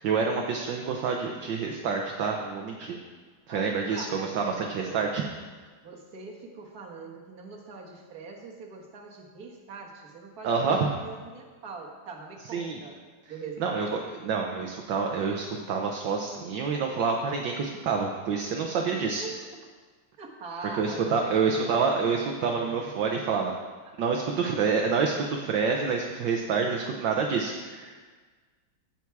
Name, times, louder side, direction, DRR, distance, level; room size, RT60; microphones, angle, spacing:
voice 1, 0.0-3.0 3.5-5.2 10.4-10.9 12.5-12.8 13.6-19.2 20.7-23.5 24.0-28.0, right 5 dB, 65° right, 2 dB, 1.4 m, -27 dB
voice 2, 3.5-5.3 5.8-13.0 13.3-13.8 18.9-19.5 20.2-21.4 23.8-23.9 24.5-24.7 25.8-26.0, right 4 dB, 45° right, 0 dB, 1.8 m, -42 dB
16.5 x 6.0 x 4.7 m, 1.4 s
omnidirectional pair, 2.4 m